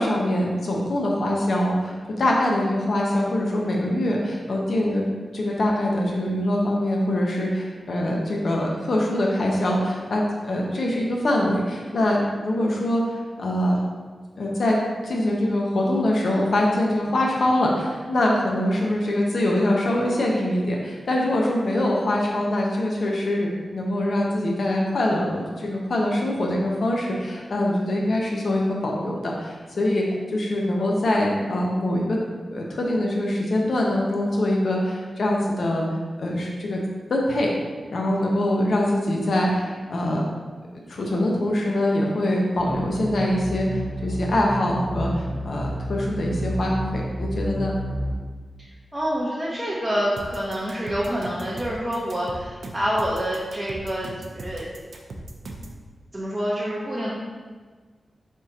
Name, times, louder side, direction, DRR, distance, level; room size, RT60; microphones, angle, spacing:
voice 1, 0.0-5.1 5.3-13.0 13.4-13.8 14.4-30.1 30.3-32.2 32.5-35.9 36.2-36.8 37.1-37.5 37.9-40.2 40.7-47.7, left 1 dB, 60° left, -2 dB, 0.6 m, -23 dB
sound 1, 42.6-48.1, right 1 dB, 45° right, 1.1 m, -30 dB
voice 2, 48.9-54.1 54.3-54.7 56.1-57.1, equal, 15° right, -7 dB, 0.6 m, -27 dB
sound 2, 50.2-55.8, right 1 dB, 75° right, 0.4 m, -38 dB
3.6 x 2.7 x 4.7 m, 1.4 s
wide cardioid pair, 160°, 0 cm